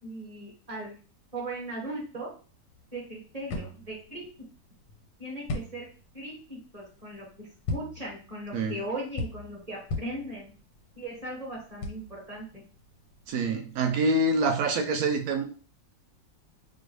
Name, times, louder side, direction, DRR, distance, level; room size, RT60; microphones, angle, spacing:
voice 1, 0.0-1.0 1.3-2.3 2.9-4.3 5.2-5.9 6.1-10.5 11.0-12.6, right 1 dB, 20° right, 1.4 m, -38 dB
sound 1, 2.7-13.4, left 3 dB, 85° left, 1.5 m, -39 dB
voice 2, 13.3-15.4, right 2 dB, 65° right, 1.1 m, -26 dB
4.3 x 2.4 x 3.2 m
omnidirectional pair, 1.9 m